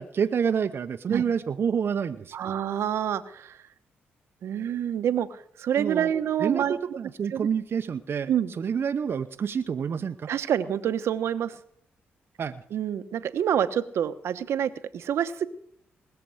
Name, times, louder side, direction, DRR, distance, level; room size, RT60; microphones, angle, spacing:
voice 1, 0.0-2.4 5.7-6.1 6.4-8.3 8.6-10.3 12.4-12.6, right 7 dB, 55° right, 7 dB, 0.8 m, -28 dB
voice 2, 2.3-3.6 4.4-6.8 7.3-7.5 8.3-8.5 10.3-11.6 12.7-15.5, right 9 dB, 75° right, 11 dB, 1.0 m, -27 dB
20.5 x 6.9 x 7.8 m, 0.69 s
supercardioid pair, 55°, 5 cm